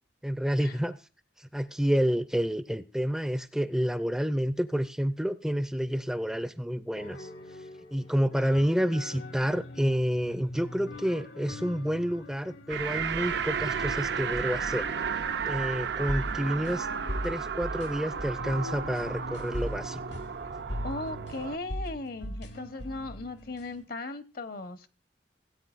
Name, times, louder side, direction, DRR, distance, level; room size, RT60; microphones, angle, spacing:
voice 1, 0.2-1.0 1.4-7.3 7.9-14.9 15.5-16.9 17.2-20.0, equal, 5° right, 0.5 m, -29 dB
sound 1, 6.9-23.8, equal, 75° left, 1.5 m, -41 dB
sound 2, 12.7-21.6, right 6 dB, 70° right, 0.5 m, -33 dB
voice 2, 20.8-24.9, left 2 dB, 55° left, 1.0 m, -37 dB
17.5 x 8.7 x 2.5 m
head